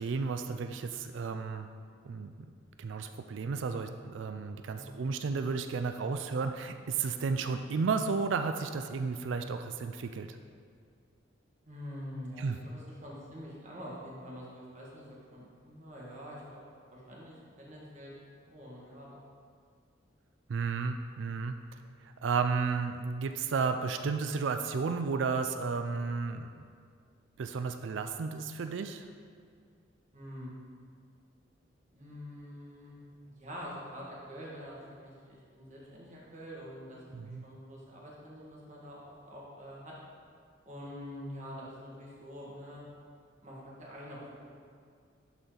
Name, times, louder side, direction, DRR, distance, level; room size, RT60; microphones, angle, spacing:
voice 1, 0.0-1.7 2.0-2.3 2.8-10.3 12.4-12.6 20.5-21.6 22.2-26.5 27.4-29.0 37.1-37.5, right 5 dB, 75° right, 7 dB, 0.4 m, -33 dB
voice 2, 4.7-5.1 11.6-16.6 16.9-18.1 18.5-19.2 30.1-30.5 31.9-33.0 33.4-39.9 40.6-42.8 43.4-44.3 44.5-44.6, equal, 35° right, -5 dB, 1.7 m, -46 dB
11.5 x 4.2 x 3.9 m, 2.2 s
head